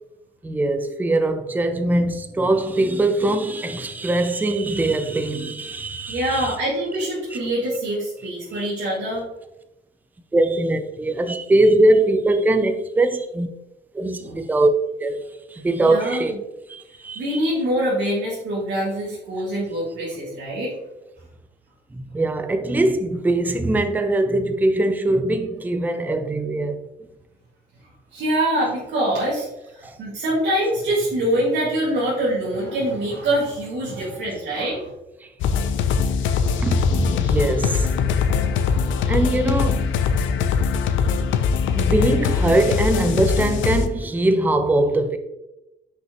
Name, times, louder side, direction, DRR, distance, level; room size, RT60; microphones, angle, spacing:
voice 1, 0.4-6.6 8.5-8.7 10.3-13.5 13.9-14.7 15.0-16.3 16.7-17.4 19.3-19.4 21.9-26.8 29.8-29.9 36.6-37.9 39.1-39.9 41.8-45.2, right 2 dB, 10° right, 0.5 m, -21 dB
voice 2, 6.1-9.3 14.2-14.4 15.8-16.4 17.2-20.7 28.1-29.5 29.7-34.9, right 1 dB, 70° right, 1.9 m, -24 dB
sound 1, 35.4-43.9, left 6 dB, 80° left, 0.6 m, -21 dB
6.1 x 5.4 x 2.9 m
cardioid pair, 135°, 20 cm